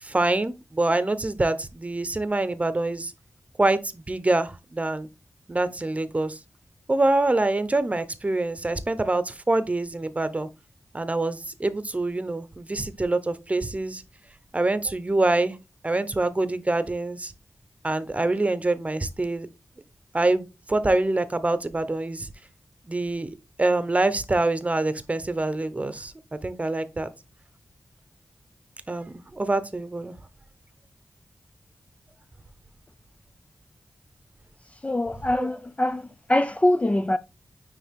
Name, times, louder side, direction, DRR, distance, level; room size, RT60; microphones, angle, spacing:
voice 1, 0.0-3.1 3.6-5.1 5.5-6.4 6.9-10.5 10.9-14.0 14.5-15.6 15.8-17.3 17.8-19.5 20.1-22.3 22.9-27.1 28.9-30.1 35.3-35.5, right 2 dB, 25° right, 0.9 m, -25 dB
voice 2, 34.8-37.2, left 1 dB, 25° left, 0.5 m, -23 dB
9.5 x 3.5 x 3.6 m
wide cardioid pair, 95°, 5 cm